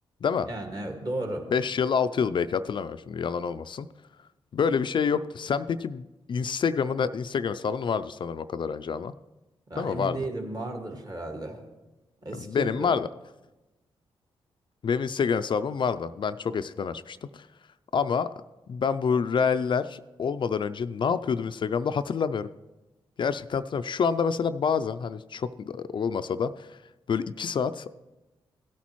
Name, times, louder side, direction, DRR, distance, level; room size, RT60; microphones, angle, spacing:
voice 1, 0.4-1.5 9.7-11.6 12.2-13.0, right 2 dB, 40° right, 4 dB, 1.9 m, -34 dB
voice 2, 1.5-3.9 4.5-9.1 9.8-10.2 12.3-13.1 14.8-17.5 17.9-18.3 18.7-22.5 23.2-26.8 27.1-28.0, left 6 dB, 55° left, 12 dB, 0.4 m, -27 dB
16.0 x 8.4 x 3.1 m, 1.1 s
cardioid pair, 60°, 10 cm